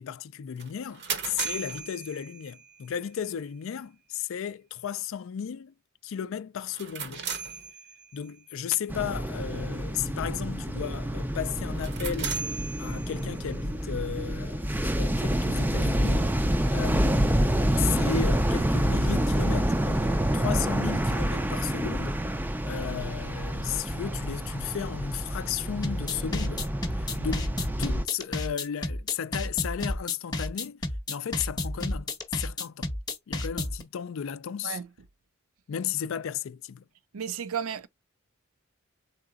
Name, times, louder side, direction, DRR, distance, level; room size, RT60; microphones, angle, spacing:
voice 1, 0.0-5.7 6.0-7.2 8.1-12.4 12.8-14.6 15.0-16.3 16.7-20.1 20.3-22.2 22.6-26.6 27.0-30.8 31.1-32.9 33.3-34.8 35.7-36.8, left 8 dB, 65° left, 0.4 m, -34 dB
sound 1, 0.6-2.8 6.6-8.3 11.7-13.5, right 6 dB, 55° right, 0.8 m, -37 dB
sound 2, 8.9-28.0, right 1 dB, 10° right, 0.4 m, -28 dB
sound 3, 25.8-33.8, left 2 dB, 20° left, 0.8 m, -31 dB
voice 2, 37.1-37.9, right 7 dB, 80° right, 0.5 m, -33 dB
4.2 x 3.8 x 2.3 m
head